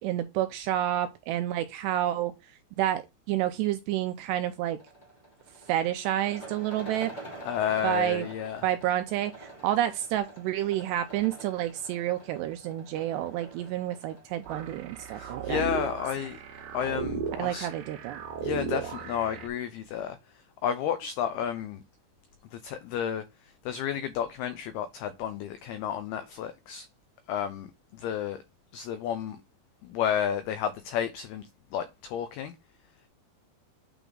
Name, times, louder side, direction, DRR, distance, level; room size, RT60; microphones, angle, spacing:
voice 1, 0.0-2.3 2.8-4.8 5.7-7.1 7.8-8.3 8.6-15.6 17.4-18.2, right 12 dB, 85° right, 2.5 m, -29 dB
sound 1, 4.7-17.0, right 2 dB, 70° left, 0.4 m, -47 dB
voice 2, 7.4-8.7 15.1-16.4 16.7-17.7 18.4-20.2 20.6-21.8 22.5-23.2 23.7-26.9 27.3-27.7 27.9-28.4 28.7-29.4 29.8-31.4 31.7-32.5, left 9 dB, 85° left, 2.2 m, -31 dB
sound 2, 14.5-19.5, right 7 dB, 70° right, 2.2 m, -36 dB
9.1 x 3.5 x 3.9 m
omnidirectional pair, 5.3 m